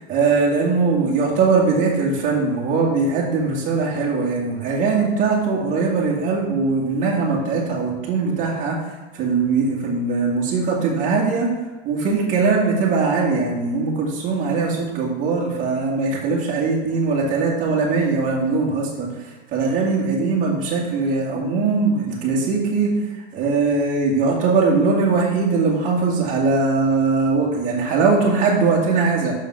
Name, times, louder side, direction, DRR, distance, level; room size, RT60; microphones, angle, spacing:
voice 1, 0.1-8.8 9.1-11.5 11.9-19.1 19.5-22.9 23.3-29.3, right 4 dB, 25° right, -3 dB, 1.8 m, -20 dB
6.4 x 5.4 x 5.5 m, 1.3 s
supercardioid pair, 160°, 33 cm